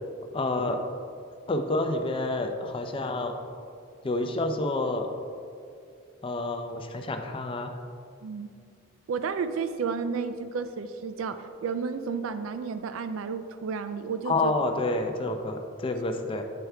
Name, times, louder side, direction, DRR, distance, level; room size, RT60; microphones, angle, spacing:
voice 1, 0.3-0.8 1.5-3.3 4.0-5.1 6.2-7.8 14.3-16.4, left 2 dB, 25° left, 5 dB, 0.4 m, -28 dB
voice 2, 9.1-14.5, right 5 dB, 90° right, 10 dB, 0.4 m, -32 dB
7.8 x 4.5 x 3.4 m, 2.4 s
head